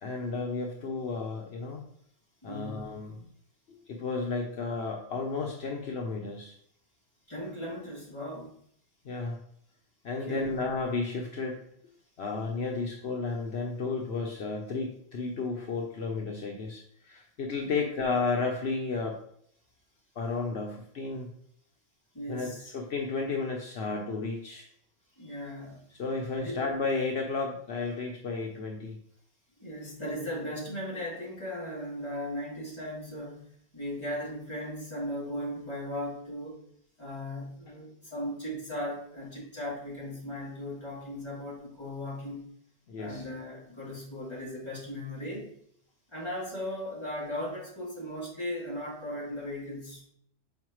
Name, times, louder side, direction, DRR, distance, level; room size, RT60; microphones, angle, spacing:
voice 1, 0.0-1.8 2.4-3.3 3.9-6.6 9.0-9.4 10.0-11.6 12.2-19.2 20.2-21.3 22.3-24.7 25.2-25.3 26.0-29.0 42.9-43.3, left 4 dB, 75° left, 0 dB, 1.1 m, -33 dB
voice 2, 2.4-3.0 7.3-8.5 10.3-10.6 22.1-22.7 25.2-25.8 26.3-26.6 29.6-33.5 33.7-36.6 37.0-42.5 43.0-45.5 46.1-50.0, left 1 dB, 25° left, -7 dB, 2.9 m, -37 dB
7.7 x 4.7 x 3.1 m, 0.68 s
omnidirectional pair, 1.1 m